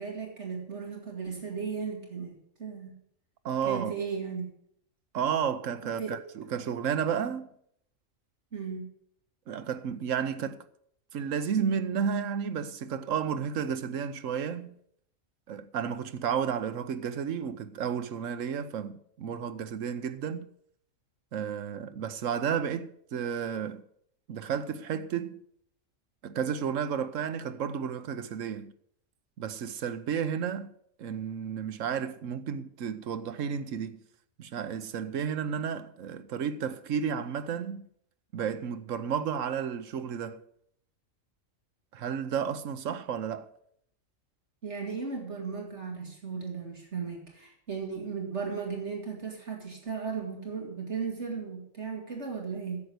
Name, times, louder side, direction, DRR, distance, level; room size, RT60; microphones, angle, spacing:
voice 1, 0.0-3.0 3.6-4.5 6.0-6.2 8.5-8.9 42.9-43.0 44.6-52.8, right 5 dB, 60° right, 2.7 m, -36 dB
voice 2, 3.4-4.0 5.1-7.5 9.5-10.6 11.1-14.8 15.5-20.5 21.3-23.8 24.3-25.4 26.2-28.7 29.4-30.7 31.0-34.0 34.4-37.9 38.3-40.4 41.9-43.5, right 7 dB, 80° right, 1.2 m, -32 dB
10.5 x 8.0 x 8.1 m
omnidirectional pair, 1.3 m